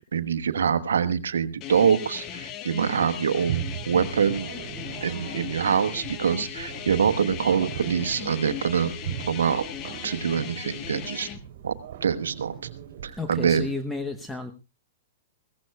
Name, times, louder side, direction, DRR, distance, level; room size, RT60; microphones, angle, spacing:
voice 1, 0.0-4.5 5.0-8.9 9.3-9.6 10.0-11.3 11.6-11.7 12.0-12.5 13.0-13.7, right 7 dB, 85° right, 11 dB, 1.1 m, -25 dB
sound 1, 1.6-11.4, left 9 dB, 35° left, 1.2 m, -37 dB
sound 2, 3.5-13.6, right 10 dB, 60° right, 2.8 m, -39 dB
voice 2, 13.2-14.5, left 2 dB, 5° left, 7 dB, 1.0 m, -32 dB
21.5 x 16.0 x 2.3 m, 0.27 s
hypercardioid pair, 125°, 0 cm